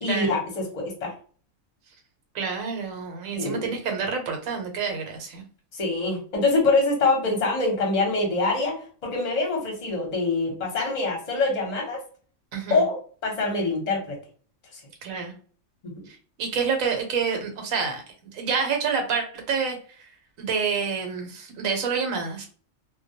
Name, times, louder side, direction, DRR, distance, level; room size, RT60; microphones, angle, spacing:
voice 1, 0.0-1.1 3.3-3.7 5.7-12.0 12.7-13.0 13.2-14.2 15.9-16.0, left 3 dB, 35° left, -1 dB, 0.8 m, -25 dB
voice 2, 2.3-5.4 12.5-12.8 15.0-15.3 16.1-18.0 18.3-20.0 20.4-22.5, right 5 dB, 80° right, 3 dB, 1.1 m, -28 dB
2.2 x 2.2 x 2.7 m, 0.42 s
omnidirectional pair, 1.4 m